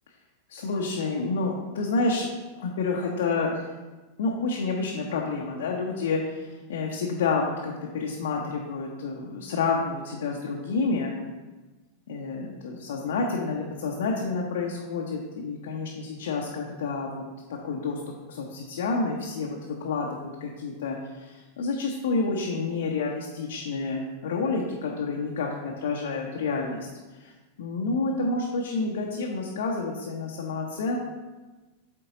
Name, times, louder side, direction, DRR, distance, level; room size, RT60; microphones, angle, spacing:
voice 1, 0.5-2.3 2.6-3.6 4.2-11.2 12.1-17.2 17.5-18.0 18.3-26.9 27.2-27.3 27.6-31.0, left 3 dB, 60° left, -1 dB, 0.7 m, -29 dB
8.0 x 3.8 x 3.8 m, 1.2 s
figure-of-eight pair, 90°, 0 cm